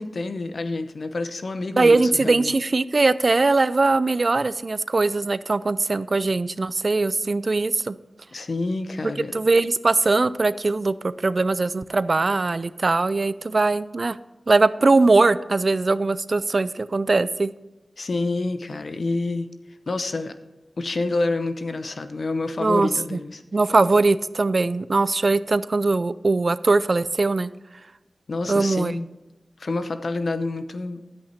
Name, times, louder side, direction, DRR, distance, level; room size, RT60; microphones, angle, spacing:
voice 1, 0.0-2.5 8.3-9.3 18.0-19.5 19.9-20.3 20.8-23.4 28.3-29.1 29.6-31.0, left 2 dB, 70° left, 10 dB, 0.7 m, -28 dB
voice 2, 1.8-7.9 9.3-14.2 14.5-17.5 22.6-23.2 23.5-27.5 28.5-29.0, right 3 dB, 55° right, 16 dB, 0.4 m, -21 dB
10.5 x 8.2 x 4.3 m, 1.0 s
cardioid pair, 40°, 0 cm